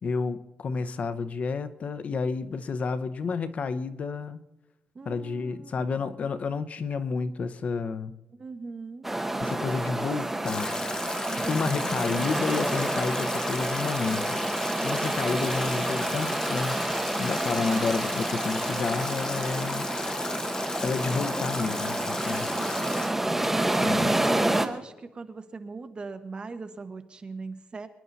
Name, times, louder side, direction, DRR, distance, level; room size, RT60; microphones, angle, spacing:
voice 1, 0.0-4.4 5.1-8.1 9.4-10.8 11.3-14.4 14.8-16.8 17.2-19.8 20.8-22.5 23.8-24.1, left 4 dB, 40° left, 13 dB, 0.8 m, -30 dB
voice 2, 4.9-6.1 8.3-9.1 9.9-10.1 11.3-12.2 17.4-17.9 22.6-23.2 23.5-27.9, right 4 dB, 30° right, 8 dB, 1.4 m, -41 dB
sound 1, 9.0-24.7, right 1 dB, 5° right, 1.1 m, -29 dB
Stream / Drip / Trickle dribble, 10.4-23.1, left 2 dB, 20° left, 1.8 m, -35 dB
24.5 x 11.0 x 4.1 m, 0.99 s
cardioid pair, 140°, 3 cm